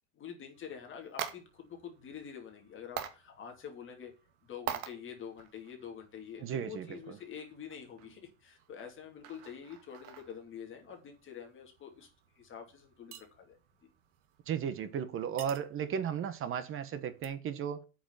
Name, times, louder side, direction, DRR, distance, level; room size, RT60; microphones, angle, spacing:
voice 1, 0.1-4.1 4.4-12.1 12.3-13.6, left 8 dB, 25° left, 2.8 m, -47 dB
sound 1, 0.5-17.3, right 10 dB, 80° right, 2.0 m, -48 dB
voice 2, 6.4-7.2 14.5-17.8, right 8 dB, 30° right, 1.0 m, -35 dB
8.6 x 6.1 x 7.3 m
supercardioid pair, 150°, 44 cm